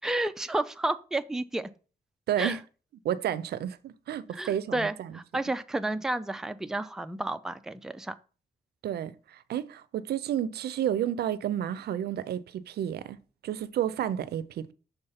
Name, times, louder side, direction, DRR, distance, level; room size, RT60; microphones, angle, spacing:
voice 1, 0.0-1.7 2.4-2.6 4.3-8.1, right 2 dB, 5° right, 0.3 m, -31 dB
voice 2, 2.3-2.6 3.0-5.1 8.8-13.2 13.4-14.7, right 10 dB, 90° right, 0.5 m, -31 dB
6.7 x 3.6 x 5.6 m
wide cardioid pair, 125°, 16 cm